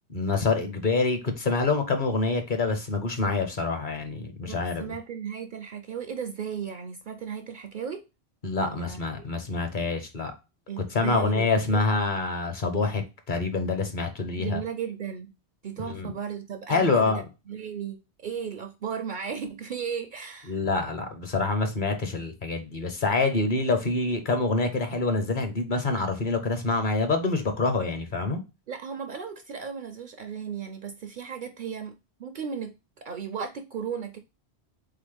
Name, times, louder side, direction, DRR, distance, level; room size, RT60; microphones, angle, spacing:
voice 1, 0.1-4.9 8.4-10.3 10.9-13.0 13.3-14.6 15.9-16.1 16.7-17.2 20.5-28.4, left 3 dB, 50° left, 1.0 m, -26 dB
voice 2, 4.5-8.1 8.6-9.2 10.7-11.9 14.4-15.3 15.6-20.6 28.7-34.2, right 7 dB, 60° right, 0.6 m, -35 dB
3.9 x 3.6 x 3.3 m
omnidirectional pair, 1.1 m